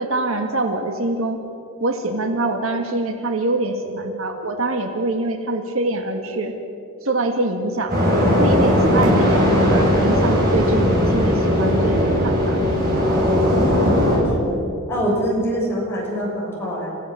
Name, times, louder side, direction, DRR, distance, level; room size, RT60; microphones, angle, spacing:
voice 1, 0.0-1.4 1.8-6.6 7.0-12.6, right 2 dB, 70° right, 5 dB, 1.9 m, -24 dB
sound 1, 7.9-14.2, equal, 45° right, 7.5 m, -18 dB
voice 2, 13.5-14.6 14.9-16.9, equal, 10° left, -4 dB, 6.9 m, -25 dB
28.0 x 16.0 x 7.8 m, 2.9 s
head